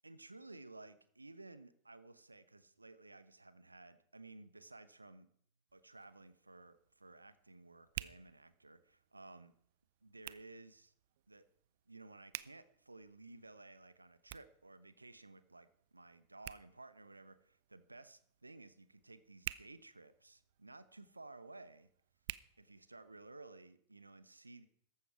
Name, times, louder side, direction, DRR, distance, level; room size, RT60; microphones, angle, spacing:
voice 1, 0.0-5.3 5.7-9.5 10.0-10.9 11.3-11.5 11.9-21.9 22.6-24.7, right 2 dB, 80° right, 14 dB, 1.0 m, -56 dB
Hands, 5.7-23.3, right 16 dB, 50° right, 0.5 m, -53 dB
14.5 x 11.5 x 4.6 m, 0.68 s
figure-of-eight pair, 90°, 0 cm